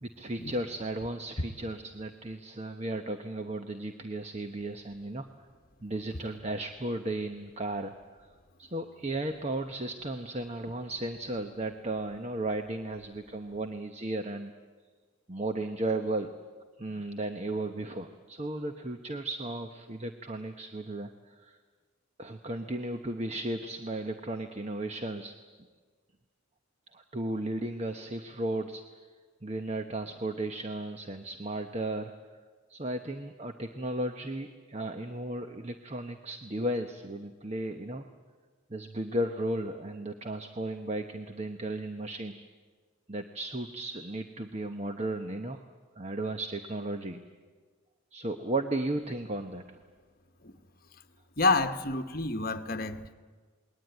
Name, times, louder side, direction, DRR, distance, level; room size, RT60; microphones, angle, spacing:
voice 1, 0.0-5.3 5.8-7.9 8.6-14.5 15.3-16.3 16.8-21.6 22.2-25.4 26.9-28.8 29.4-32.1 32.7-38.0 38.7-42.4 43.1-45.6 46.0-47.2 48.1-49.8, right 1 dB, 30° right, 6 dB, 1.0 m, -35 dB
voice 2, 51.4-53.1, left 3 dB, 40° left, 8 dB, 1.2 m, -28 dB
28.0 x 20.5 x 9.2 m, 1.5 s
head